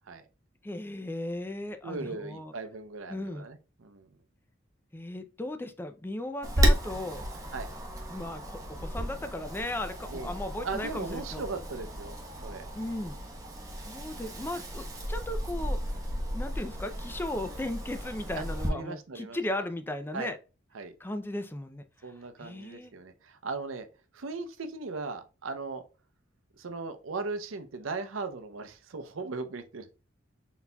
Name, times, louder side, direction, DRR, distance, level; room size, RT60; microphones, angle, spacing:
voice 1, 0.6-2.5 3.1-3.5 4.9-7.2 8.1-11.4 12.7-13.2 13.8-15.8 16.3-20.4 21.0-21.8 22.4-22.9, left 1 dB, 10° left, 0.4 m, -36 dB
voice 2, 1.8-4.1 7.5-7.7 10.1-10.3 10.6-12.2 12.4-12.7 18.7-19.4 20.1-20.3 20.7-20.9 22.0-23.9 24.1-25.8 26.6-29.9, right 4 dB, 85° right, 0.6 m, -38 dB
Wind, 6.4-18.7, equal, 20° right, 0.9 m, -33 dB
4.2 x 4.1 x 2.2 m
head